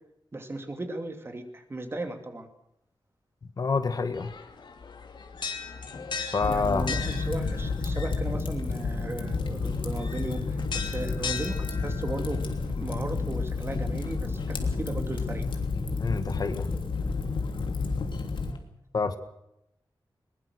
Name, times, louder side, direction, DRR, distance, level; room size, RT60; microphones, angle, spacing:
voice 1, 0.3-2.5 6.5-15.4, right 2 dB, 30° right, 6 dB, 2.7 m, -36 dB
voice 2, 3.6-4.3 6.3-6.9 16.0-16.7 18.9-19.2, left 4 dB, 50° left, 9 dB, 1.7 m, -27 dB
sound 1, 4.1-18.6, left 5 dB, 70° left, 2.7 m, -41 dB
Fire, 6.4-18.5, left 4 dB, 90° left, 3.1 m, -30 dB
21.5 x 21.0 x 6.5 m, 0.81 s
wide cardioid pair, 155°, 8 cm